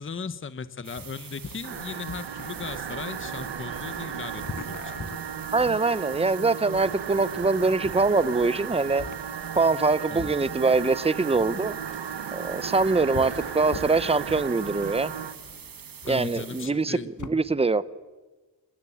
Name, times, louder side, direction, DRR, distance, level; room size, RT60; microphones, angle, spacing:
voice 1, 0.0-5.0 10.1-10.3 16.1-17.1, left 5 dB, 30° left, 13 dB, 1.0 m, -37 dB
sound 1, 0.8-16.7, right 7 dB, 55° right, 1.7 m, -45 dB
sound 2, 1.0-17.3, left 5 dB, 45° left, 1.5 m, -43 dB
sound 3, 1.6-15.4, right 8 dB, 80° right, 1.5 m, -35 dB
voice 2, 5.5-9.0 9.5-11.8 12.3-15.1 16.0-17.8, right 3 dB, 15° right, 17 dB, 0.8 m, -23 dB
27.5 x 21.5 x 8.6 m, 1.2 s
wide cardioid pair, 145°, 41 cm